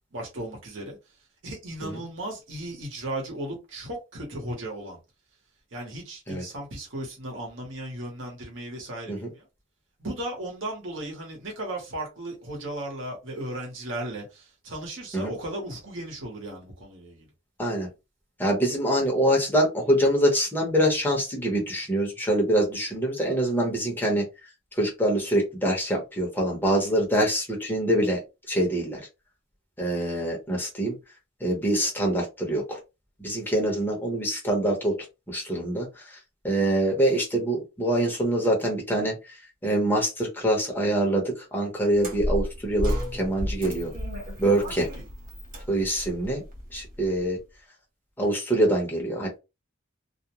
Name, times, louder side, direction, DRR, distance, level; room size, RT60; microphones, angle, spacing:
voice 1, 0.1-1.0 1.4-5.0 5.7-9.5 10.0-17.3 36.7-36.8 44.5-45.0, right 1 dB, 70° right, 0.9 m, -36 dB
voice 2, 18.4-24.2 24.8-28.2 28.5-29.0 29.8-30.9 31.4-32.8 33.2-35.0 35.3-35.9 36.4-39.1 39.6-41.2 41.5-43.9 44.4-44.9 45.7-46.4 46.7-47.4 48.2-49.4, right 1 dB, 10° left, 0.9 m, -24 dB
sound 1, 41.9-47.2, equal, 45° right, 0.9 m, -33 dB
2.4 x 2.1 x 2.9 m
head